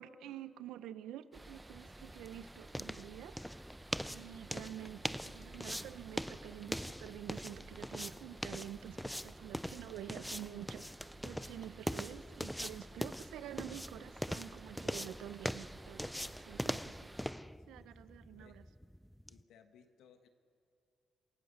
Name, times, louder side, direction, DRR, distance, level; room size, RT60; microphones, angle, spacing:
voice 1, 0.0-3.4 4.1-9.0 9.2-10.8 11.2-17.1 17.7-18.6, right 11 dB, 85° right, 14 dB, 0.7 m, -48 dB
sound 1, 1.3-17.3, right 1 dB, 20° right, 0.9 m, -54 dB
sound 2, 1.6-19.4, equal, 5° left, 0.5 m, -42 dB
sound 3, 3.9-11.9, right 9 dB, 65° right, 1.1 m, -62 dB
voice 2, 17.6-17.9 18.4-18.5 19.3-20.3, left 7 dB, 85° left, 7 dB, 1.4 m, -63 dB
27.5 x 17.0 x 6.8 m, 2.5 s
supercardioid pair, 60°, 0 cm